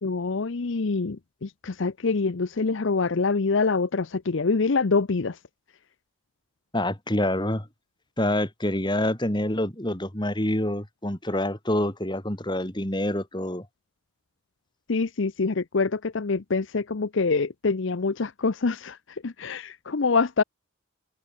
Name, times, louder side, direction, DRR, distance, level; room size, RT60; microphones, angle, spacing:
voice 1, 0.0-5.4 14.9-19.0 19.2-20.4, left 4 dB, 65° left, 0.7 m, -25 dB
voice 2, 6.7-7.7 8.2-13.7, left 1 dB, 20° left, 3.1 m, -26 dB
head